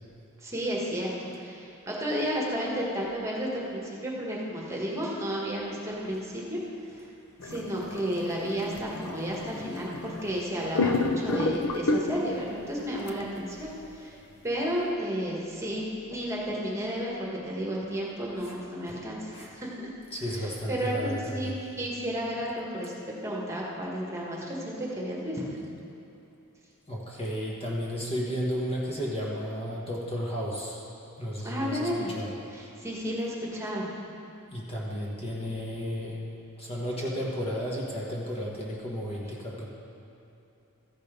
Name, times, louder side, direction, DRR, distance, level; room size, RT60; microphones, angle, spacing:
voice 1, 0.4-6.6 7.0-7.1 7.4-14.2 14.4-19.7 20.3-25.5 31.4-32.1 32.5-33.9, equal, 15° right, -4 dB, 1.5 m, -32 dB
sound 1, 7.4-10.4 10.8-12.5 13.1-13.2, left 2 dB, 75° left, 0.6 m, -30 dB
voice 2, 20.1-21.5 26.9-30.8 31.2-32.3 34.5-36.3 36.6-39.7, equal, 25° left, -4 dB, 1.3 m, -33 dB
14.0 x 5.4 x 5.1 m, 2.8 s
head